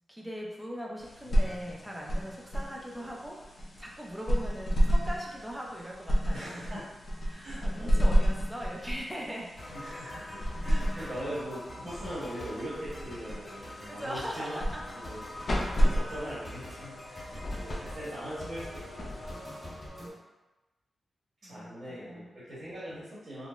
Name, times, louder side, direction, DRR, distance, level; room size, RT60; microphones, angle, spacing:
voice 1, 0.1-6.7 7.2-9.5 10.9-11.2 13.9-14.8 15.7-15.9 18.4-18.6 20.0-20.2 21.4-22.3, equal, 5° right, -2 dB, 0.5 m, -40 dB
sound 1, 1.0-19.9, equal, 50° left, 0.6 m, -31 dB
voice 2, 6.3-6.8 7.4-8.2 9.7-14.6 14.9-15.2 15.8-19.2 21.4-23.5, equal, 70° right, -12 dB, 1.2 m, -41 dB
sound 2, 9.6-20.1, left 1 dB, 30° left, 1.5 m, -44 dB
3.9 x 2.0 x 2.4 m, 1.1 s
wide cardioid pair, 115°, 0 cm